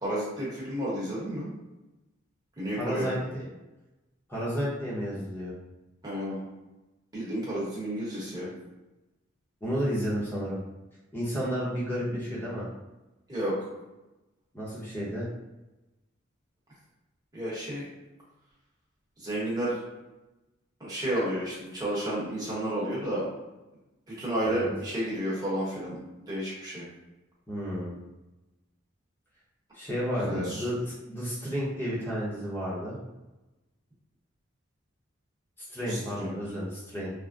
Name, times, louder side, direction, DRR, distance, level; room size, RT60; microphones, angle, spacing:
voice 1, 0.0-1.5 2.6-3.3 6.0-6.4 7.1-8.5 13.3-13.5 17.3-17.8 19.2-19.7 20.8-23.3 24.1-26.8 30.2-30.6 35.9-36.3, right 1 dB, 20° right, -8 dB, 1.0 m, -31 dB
voice 2, 2.7-3.5 4.3-5.5 9.6-10.6 11.1-12.7 14.5-15.3 24.4-24.7 27.5-28.0 29.7-33.0 35.7-37.1, equal, 10° left, -7 dB, 0.8 m, -31 dB
3.3 x 2.1 x 2.5 m, 1.0 s
head